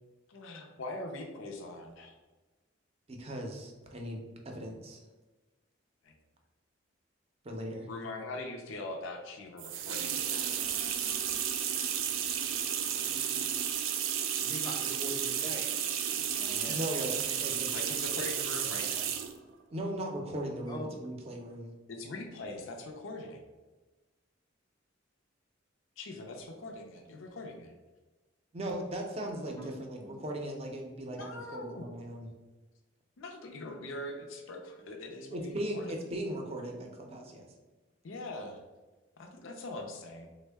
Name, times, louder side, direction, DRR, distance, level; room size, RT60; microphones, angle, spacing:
voice 1, 0.3-2.1 6.1-6.2 7.9-10.9 16.5-16.9 17.7-19.1 21.9-23.4 26.0-27.7 31.1-31.9 33.2-35.9 38.0-38.6 39.2-40.3, left 2 dB, 80° left, 3 dB, 0.5 m, -42 dB
voice 2, 3.1-5.0 7.4-7.9 16.7-17.1 17.4-17.9 19.7-21.7 28.5-32.3 35.3-37.5, right 1 dB, 30° right, 2 dB, 0.5 m, -38 dB
sound 1, 9.6-19.4, right 9 dB, 85° right, 0.4 m, -32 dB
voice 3, 12.8-13.4 14.4-15.8 16.3-17.1 20.7-21.0 29.5-29.8, equal, 20° left, 0 dB, 0.5 m, -43 dB
3.5 x 2.1 x 3.3 m, 1.2 s
head